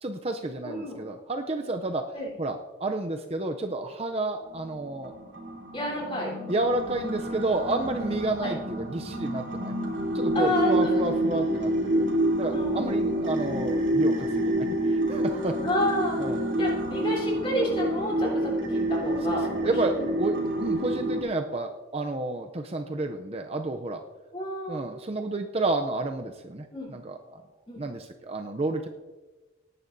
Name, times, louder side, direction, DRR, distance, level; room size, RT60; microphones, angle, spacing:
voice 1, 0.0-2.1 2.4-5.1 6.5-9.7 10.1-12.1 12.4-14.6 14.9-15.6 16.2-16.4 19.6-24.0 24.7-27.4 27.8-28.9, right 2 dB, 30° right, 5 dB, 0.5 m, -30 dB
voice 2, 0.6-1.0 2.1-2.3 5.7-6.3 8.4-8.5 10.3-11.0 12.5-13.0 15.6-16.2 16.6-19.8 24.3-24.8 26.7-26.9 27.7-27.8, left 1 dB, 25° left, -3 dB, 3.6 m, -30 dB
sound 1, 4.5-21.2, right 1 dB, 65° right, 3.1 m, -28 dB
18.5 x 11.0 x 2.7 m, 1.2 s
head